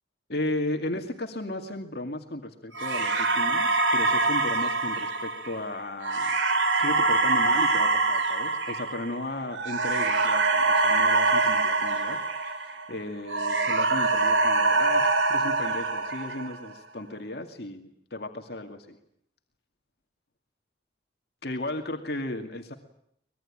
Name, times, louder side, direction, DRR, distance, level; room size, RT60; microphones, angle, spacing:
voice 1, 0.3-6.3 6.7-19.0 21.4-22.7, left 1 dB, 55° left, 4 dB, 2.3 m, -35 dB
sound 1, 2.7-12.9 13.3-16.7, right 3 dB, 90° right, 3.9 m, -24 dB
25.0 x 21.0 x 8.8 m, 0.71 s
head